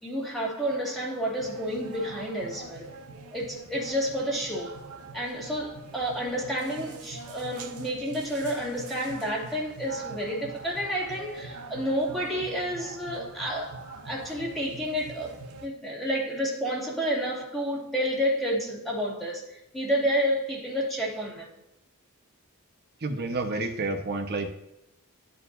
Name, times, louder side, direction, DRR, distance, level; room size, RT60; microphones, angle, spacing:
voice 1, 0.0-2.9 3.3-4.8 5.1-15.4 15.6-21.5, equal, ahead, 2.6 m, -30 dB
sound 1, 1.4-15.7, right 3 dB, 85° right, 0.9 m, -43 dB
voice 2, 23.0-24.5, right 2 dB, 50° right, 1.2 m, -29 dB
13.0 x 4.6 x 2.7 m
head